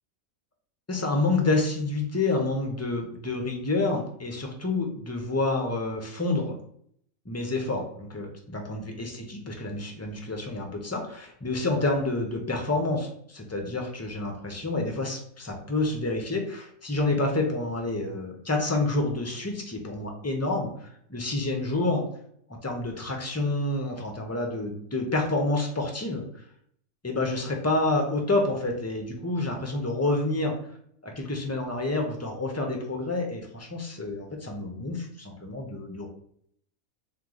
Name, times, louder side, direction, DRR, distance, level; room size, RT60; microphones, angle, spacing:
voice 1, 0.9-6.6 7.3-22.0 22.6-26.2 27.0-30.5 31.0-36.1, left 2 dB, 25° left, 2 dB, 0.4 m, -28 dB
3.7 x 3.1 x 3.8 m, 0.66 s
omnidirectional pair, 1.5 m